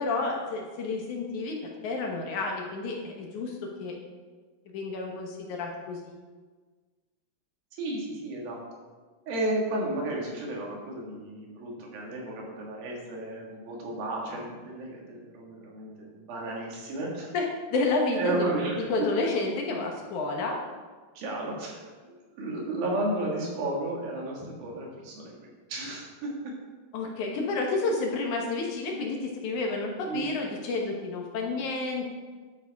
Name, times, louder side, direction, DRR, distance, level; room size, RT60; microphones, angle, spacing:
voice 1, 0.0-4.0 4.7-6.2 17.3-18.5 18.9-20.6 26.9-32.1, left 3 dB, 65° left, 1 dB, 2.3 m, -30 dB
voice 2, 7.7-8.6 9.3-17.3 18.1-19.1 21.2-25.4 25.7-26.5 30.1-30.3, right 2 dB, 85° right, -2 dB, 3.8 m, -33 dB
11.5 x 9.0 x 3.5 m, 1.4 s
omnidirectional pair, 4.1 m